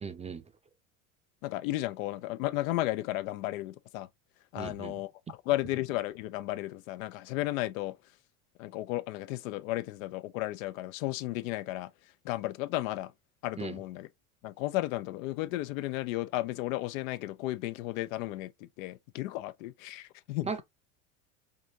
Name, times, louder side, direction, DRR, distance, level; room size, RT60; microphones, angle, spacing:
voice 1, 0.0-0.4 4.6-4.9 13.6-13.8 20.4-20.6, right 5 dB, 15° right, 0.5 m, -37 dB
voice 2, 1.4-4.1 4.5-7.9 8.6-11.9 12.2-13.1 13.4-14.1 14.4-20.6, left 17 dB, 75° left, 0.6 m, -34 dB
4.9 x 2.7 x 2.8 m
supercardioid pair, 100°, 40 cm